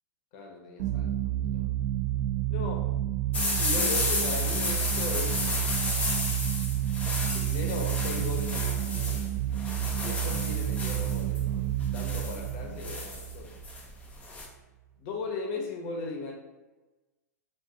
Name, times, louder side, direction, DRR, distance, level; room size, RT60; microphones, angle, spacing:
voice 1, 0.3-1.7 2.5-2.9 3.6-5.5 7.3-9.3 10.0-13.5 15.0-16.3, left 3 dB, 50° left, 1 dB, 0.9 m, -37 dB
sound 1, 0.8-14.1, right 12 dB, 55° right, 0.5 m, -30 dB
sound 2, 3.3-14.5, left 2 dB, 15° left, 0.6 m, -32 dB
2.6 x 2.6 x 3.7 m, 1.1 s
hypercardioid pair, 105°, 9 cm